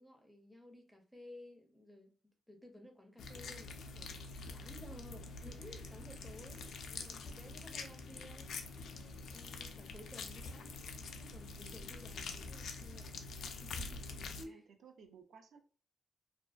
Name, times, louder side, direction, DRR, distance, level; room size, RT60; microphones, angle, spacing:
voice 1, 0.0-8.5 8.8-10.7 11.2-13.3 13.6-14.7, left 1 dB, ahead, 0.4 m, -56 dB
sound 1, 3.2-14.4, left 4 dB, 65° left, 0.3 m, -46 dB
voice 2, 14.3-15.6, right 6 dB, 65° right, 0.4 m, -58 dB
2.4 x 2.1 x 2.3 m
wide cardioid pair, 170°, 0 cm